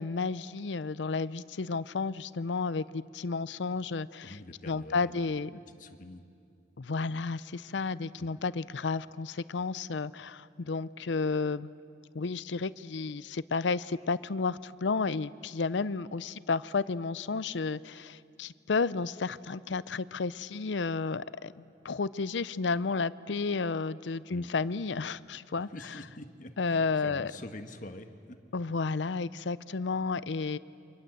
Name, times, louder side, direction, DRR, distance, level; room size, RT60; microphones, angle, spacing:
voice 1, 0.0-4.4 4.7-5.5 6.8-11.7 12.1-25.7 26.6-27.3 28.5-30.6, left 4 dB, 85° left, 17 dB, 0.6 m, -32 dB
voice 2, 4.2-6.2 8.2-8.3 24.3-24.5 25.6-28.4, left 1 dB, 45° left, 7 dB, 1.5 m, -46 dB
29.0 x 24.5 x 7.8 m, 2.4 s
head